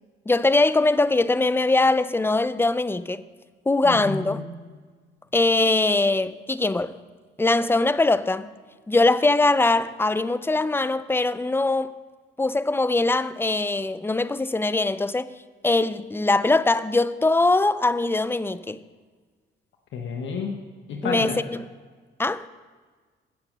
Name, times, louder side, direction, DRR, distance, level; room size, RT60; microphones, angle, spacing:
voice 1, 0.3-3.2 3.7-4.4 5.3-7.0 7.4-8.5 8.9-11.9 12.4-15.3 15.6-18.8 21.0-21.6 22.2-22.5, left 2 dB, 10° left, 0.5 m, -22 dB
voice 2, 3.8-4.4 19.9-20.6 20.9-21.4, left 5 dB, 70° left, 1.3 m, -30 dB
16.5 x 6.5 x 6.1 m
cardioid pair, 90°, 20 cm